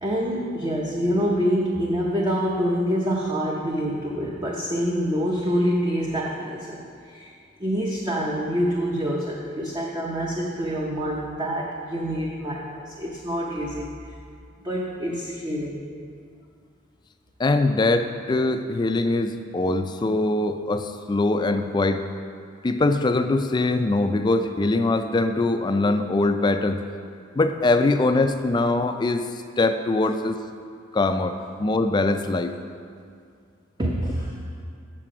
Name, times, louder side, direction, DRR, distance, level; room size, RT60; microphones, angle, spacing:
voice 1, 0.0-7.3 7.6-13.9 14.6-15.9 33.8-34.3, equal, 20° right, -2 dB, 0.6 m, -26 dB
voice 2, 17.4-22.0 22.6-26.8 27.3-29.3 29.6-30.4 30.9-32.6, left 2 dB, 20° left, 8 dB, 0.3 m, -22 dB
7.4 x 6.8 x 4.9 m, 2.3 s
head